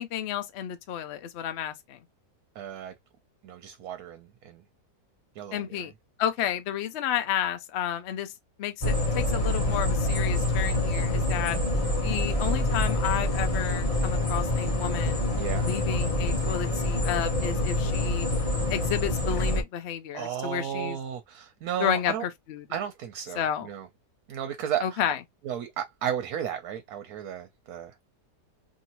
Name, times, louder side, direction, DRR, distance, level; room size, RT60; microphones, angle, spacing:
voice 1, 0.0-2.0 5.5-5.9 6.2-8.3 8.6-11.6 12.0-15.2 15.6-18.3 18.7-21.0 21.8-22.6 23.3-23.7 24.8-25.2, left 10 dB, 65° left, 0.7 m, -31 dB
voice 2, 2.6-2.9 3.4-4.6 5.4-5.9 15.4-15.7 20.1-22.2 22.7-23.9 24.3-25.0 25.4-27.9, right 9 dB, 70° right, 1.0 m, -34 dB
sound 1, 8.8-19.6, left 2 dB, 25° left, 0.8 m, -26 dB
2.8 x 2.7 x 2.8 m
omnidirectional pair, 1.8 m